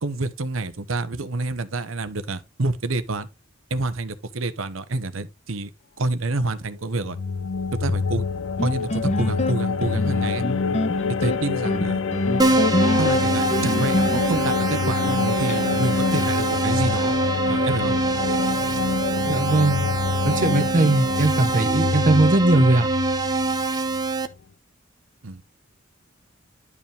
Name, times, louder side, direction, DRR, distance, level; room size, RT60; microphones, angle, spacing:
voice 1, 0.0-3.3 3.7-5.7 6.0-7.2 7.7-8.3 8.6-10.5 11.2-12.0 13.0-17.2 17.5-18.0 25.2-25.4, right 2 dB, 80° right, 1.0 m, -28 dB
sound 1, 6.8-24.2, left 5 dB, 75° left, 0.5 m, -26 dB
sound 2, 8.6-15.6, left 1 dB, 35° left, 1.1 m, -27 dB
Keyboard (musical), 12.4-24.3, right 3 dB, 20° right, 0.9 m, -24 dB
voice 2, 19.3-19.9 20.2-22.9, right 2 dB, 40° right, 1.1 m, -19 dB
11.0 x 5.0 x 3.4 m
head